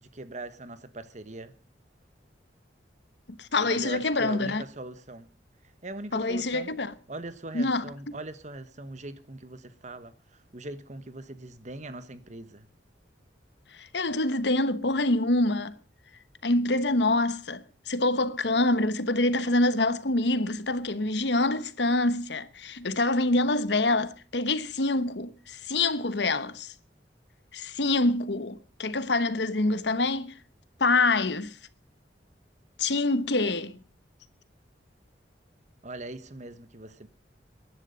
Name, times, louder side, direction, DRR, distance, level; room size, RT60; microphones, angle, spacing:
voice 1, 0.0-1.5 3.6-5.3 5.8-6.7 7.1-10.1 10.5-12.7 35.8-37.1, right 2 dB, 40° right, 1.4 m, -41 dB
voice 2, 3.3-4.6 6.1-6.9 7.5-8.2 13.8-15.8 16.4-26.7 27.5-30.3 30.8-31.5 32.8-33.8, left 2 dB, 70° left, 1.1 m, -26 dB
22.0 x 11.0 x 5.2 m
head